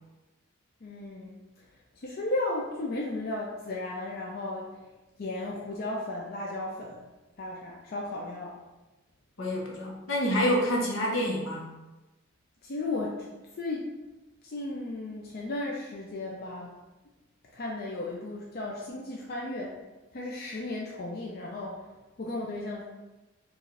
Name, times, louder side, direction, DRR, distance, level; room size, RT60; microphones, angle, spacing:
voice 1, 0.8-1.4 2.0-4.7 5.2-7.1 7.4-8.6 12.6-13.3 13.6-13.9 14.4-16.7 17.5-19.8 20.1-21.8 22.2-22.8, left 2 dB, 50° left, -2 dB, 0.5 m, -34 dB
voice 2, 9.4-11.6, equal, 80° left, -2 dB, 0.9 m, -27 dB
4.7 x 2.5 x 3.2 m, 1.1 s
head